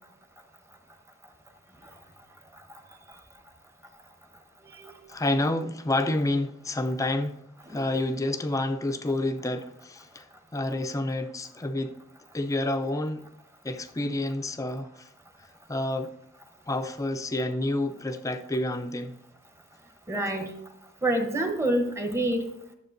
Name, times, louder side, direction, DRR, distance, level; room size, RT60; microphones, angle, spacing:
voice 1, 5.1-7.4 7.7-10.3 10.5-12.0 12.3-13.2 13.6-15.1 15.7-16.1 16.7-19.2, left 1 dB, 15° left, 0.4 m, -29 dB
voice 2, 20.1-20.6 21.0-22.5, right 1 dB, 10° right, 0.8 m, -27 dB
13.0 x 7.1 x 2.6 m
head